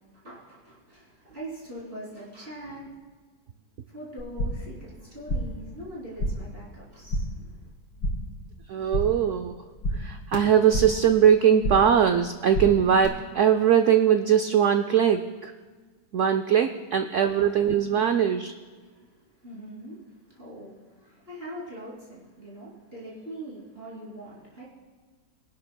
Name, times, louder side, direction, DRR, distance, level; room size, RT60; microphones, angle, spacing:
voice 1, 0.1-2.9 3.9-7.5 18.8-24.7, right 1 dB, 35° right, -6 dB, 3.2 m, -42 dB
sound 1, 4.2-4.7 5.0-5.6 5.9-6.6 6.8-7.4 7.7-8.4 8.7-9.3 9.5-11.1 11.4-12.0 12.3-13.1, equal, 75° left, 2.4 m, -31 dB
voice 2, 8.7-9.6 10.0-15.5 16.1-18.5, right 8 dB, 80° right, 7 dB, 0.6 m, -21 dB
22.5 x 11.5 x 2.2 m, 1.4 s
omnidirectional pair, 1.8 m